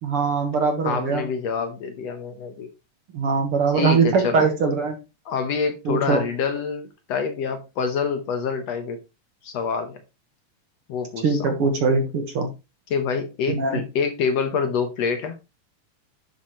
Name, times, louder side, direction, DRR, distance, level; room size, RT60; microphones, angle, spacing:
voice 1, 0.0-1.3 3.1-5.0 5.9-6.2 11.2-12.5 13.5-13.8, right 4 dB, 50° right, 2.0 m, -21 dB
voice 2, 0.8-2.7 3.7-4.4 5.3-9.0 9.4-10.0 10.9-11.6 12.9-15.4, left 5 dB, 65° left, 1.9 m, -26 dB
11.0 x 7.3 x 3.1 m
omnidirectional pair, 3.7 m